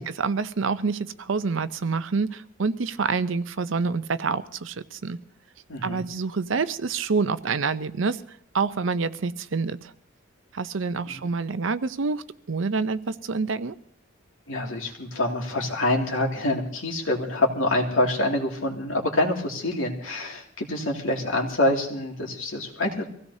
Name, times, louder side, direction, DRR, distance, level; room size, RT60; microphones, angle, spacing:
voice 1, 0.0-5.2 5.8-8.2 8.5-9.9 10.5-13.8, right 4 dB, 70° right, 13 dB, 0.6 m, -27 dB
voice 2, 5.7-6.0 11.0-11.2 14.5-23.0, left 1 dB, 80° left, 1 dB, 2.4 m, -26 dB
24.0 x 16.0 x 2.7 m, 0.64 s
head